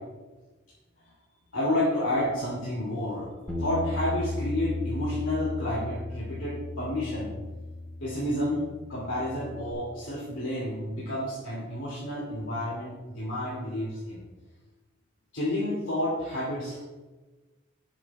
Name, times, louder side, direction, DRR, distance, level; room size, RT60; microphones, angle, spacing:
voice 1, 1.5-7.3 8.0-14.2 15.3-17.0, left 1 dB, 85° left, -7 dB, 2.8 m, -30 dB
Bass guitar, 3.5-9.7, left 2 dB, 5° left, 2.7 m, -35 dB
18.5 x 7.5 x 2.4 m, 1.2 s
head